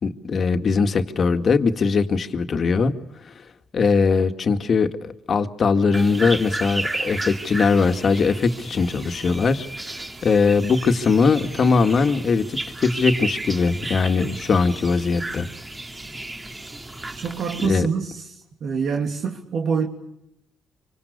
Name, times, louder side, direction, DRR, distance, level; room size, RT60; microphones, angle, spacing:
voice 1, 0.0-2.9 3.7-9.7 9.9-15.5 17.6-17.9, left 4 dB, 50° left, 2.1 m, -20 dB
sound 1, 5.9-17.7, right 2 dB, 20° right, 3.0 m, -33 dB
voice 2, 17.1-18.1 18.6-19.9, right 6 dB, 65° right, 3.2 m, -25 dB
26.5 x 25.5 x 6.8 m
cardioid pair, 90°, 0 cm